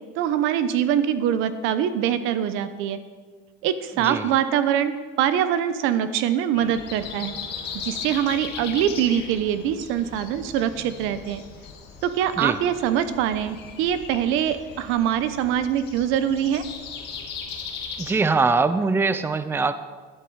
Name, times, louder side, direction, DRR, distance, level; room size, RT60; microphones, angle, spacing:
voice 1, 0.2-3.0 3.6-4.9 5.2-7.3 7.8-11.4 12.0-16.6, right 9 dB, 80° right, 12 dB, 0.9 m, -23 dB
voice 2, 4.0-4.3 12.4-12.6 18.0-19.7, right 4 dB, 10° right, 12 dB, 0.5 m, -22 dB
Breathing, 6.5-18.1, left 6 dB, 55° left, 2.3 m, -38 dB
12.0 x 11.0 x 4.8 m, 1.5 s
cardioid pair, 110°, 21 cm